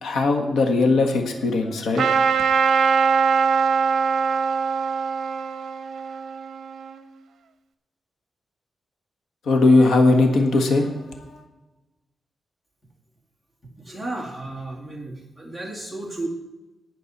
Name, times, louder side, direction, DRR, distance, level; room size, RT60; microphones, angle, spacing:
voice 1, 0.0-2.1 9.4-11.4, left 3 dB, 85° left, 3 dB, 1.5 m, -19 dB
Trumpet, 1.9-7.0, right 6 dB, 75° right, 0.7 m, -22 dB
voice 2, 13.9-16.3, right 2 dB, 5° left, -2 dB, 2.3 m, -33 dB
19.0 x 6.7 x 4.2 m, 1.1 s
wide cardioid pair, 165°, 0 cm